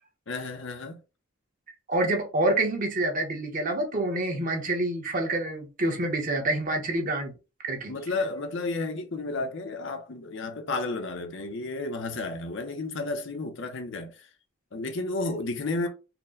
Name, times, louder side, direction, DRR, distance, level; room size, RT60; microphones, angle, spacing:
voice 1, 0.3-1.0 7.9-14.3 14.7-15.9, left 3 dB, 60° left, 0.6 m, -32 dB
voice 2, 1.9-7.3 7.6-7.9, right 2 dB, 40° right, 0.9 m, -27 dB
4.3 x 2.1 x 3.7 m
head